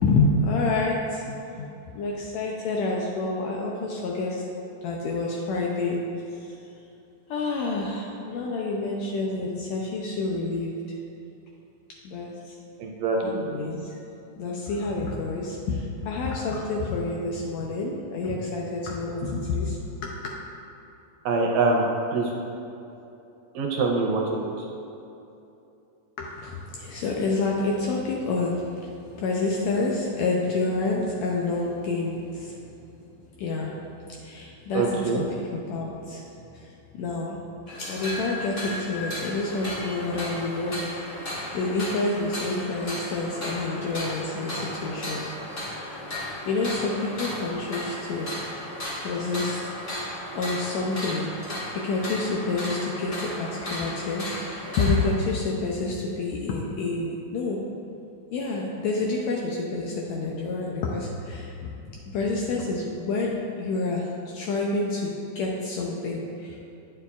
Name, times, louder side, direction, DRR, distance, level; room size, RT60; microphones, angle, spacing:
voice 1, 0.0-1.7 1.9-4.4 4.8-6.0 6.3-6.6 7.3-11.0 12.0-12.6 13.2-14.0 14.4-20.1 26.2-32.6 33.4-33.7 34.1-37.4 37.8-40.8 41.2-45.3 46.1-48.3 49.0-49.7 50.3-51.3 51.7-57.6 58.3-66.7, left 3 dB, 80° left, -2 dB, 1.6 m, -28 dB
voice 2, 12.8-13.4 21.3-21.8 22.1-22.3 23.6-24.7 34.7-35.2, right 3 dB, 80° right, 0 dB, 1.8 m, -24 dB
sound 1, 37.7-55.1, left 1 dB, 40° left, 1.0 m, -35 dB
9.6 x 6.8 x 2.4 m, 2.8 s
omnidirectional pair, 3.6 m